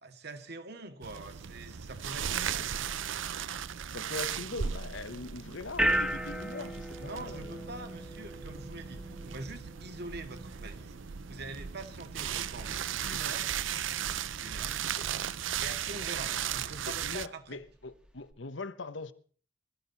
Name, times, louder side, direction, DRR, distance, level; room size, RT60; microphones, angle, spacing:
voice 1, 0.0-2.8 7.0-11.0 11.3-12.8 13.0-13.5 14.4-14.8 15.6-17.6, right 2 dB, 60° right, 2.0 m, -44 dB
sound 1, 1.0-17.3, right 9 dB, 80° right, 0.6 m, -36 dB
voice 2, 3.9-7.6 16.9-19.1, left 3 dB, 70° left, 1.0 m, -41 dB
sound 2, 5.7-18.3, right 1 dB, 5° right, 1.6 m, -39 dB
21.5 x 13.0 x 4.1 m
head